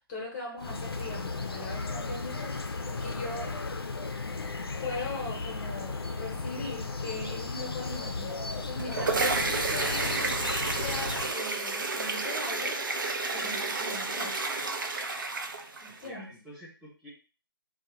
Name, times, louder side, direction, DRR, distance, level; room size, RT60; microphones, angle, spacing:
voice 1, 0.1-3.5 4.8-10.3 10.8-12.8 13.3-14.4 15.8-16.3, left 2 dB, 20° left, -1 dB, 0.8 m, -40 dB
sound 1, 0.6-11.3, left 3 dB, 75° left, 0.5 m, -35 dB
sound 2, 8.6-16.1, right 3 dB, 55° right, 0.5 m, -31 dB
voice 2, 15.9-17.1, equal, ahead, -11 dB, 0.4 m, -48 dB
2.6 x 2.2 x 3.0 m, 0.35 s
figure-of-eight pair, 150°, 13 cm